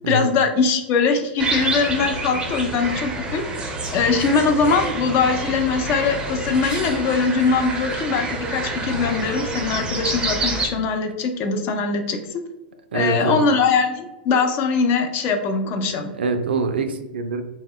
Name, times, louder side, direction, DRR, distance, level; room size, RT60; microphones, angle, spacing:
voice 1, 0.1-3.4 3.9-12.4 12.9-16.1, left 5 dB, 40° left, 5 dB, 0.4 m, -21 dB
sound 1, 1.4-10.7, right 2 dB, 15° right, 0.5 m, -27 dB
voice 2, 12.9-13.4 16.1-17.4, right 3 dB, 80° right, 7 dB, 0.3 m, -24 dB
2.1 x 2.1 x 3.5 m, 0.98 s
hypercardioid pair, 100°, 6 cm